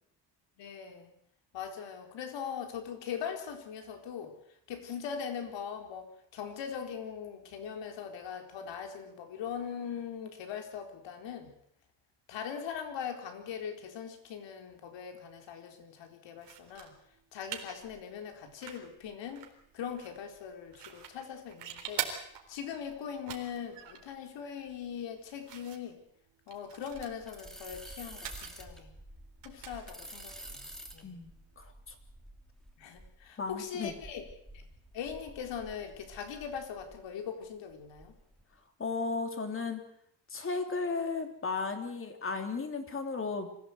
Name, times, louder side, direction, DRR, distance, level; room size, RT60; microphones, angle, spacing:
voice 1, 0.6-1.1 1.5-4.3 4.7-11.5 12.3-16.9 17.3-19.5 19.7-22.1 22.5-26.0 26.5-28.9 29.4-31.2 32.8-34.2 34.5-34.7 34.9-38.1, left 7 dB, 75° left, 5 dB, 4.4 m, -41 dB
sound 1, 16.4-31.5, right 9 dB, 65° right, 4.1 m, -46 dB
sound 2, 26.9-37.1 37.4-38.4, equal, ahead, 2.9 m, -50 dB
voice 2, 31.0-31.9 33.4-33.9 38.8-39.8 40.3-43.5, left 4 dB, 30° left, 6 dB, 3.3 m, -35 dB
25.0 x 16.0 x 8.2 m, 0.72 s
cardioid pair, 145°, 44 cm